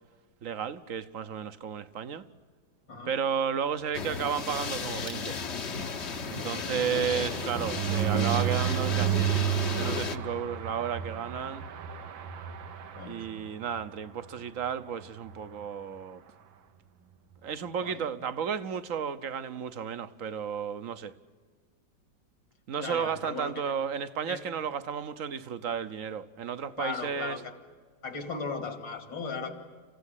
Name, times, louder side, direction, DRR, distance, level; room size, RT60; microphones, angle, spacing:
voice 1, 0.4-2.2 3.0-5.4 6.3-11.7 13.0-16.2 17.4-21.1 22.7-27.4, right 7 dB, 55° right, 1.1 m, -33 dB
sound 1, 3.9-10.2, left 5 dB, 45° left, 1.1 m, -34 dB
sound 2, 5.0-13.8 14.2-14.4 14.7-14.8 15.0-15.3, right 11 dB, 90° right, 1.9 m, -32 dB
voice 2, 6.3-6.8 12.9-13.3 17.8-18.1 22.8-23.7 24.3-24.4 26.8-27.5 28.0-29.5, left 4 dB, 70° left, 3.1 m, -37 dB
28.5 x 16.0 x 9.9 m
omnidirectional pair, 2.1 m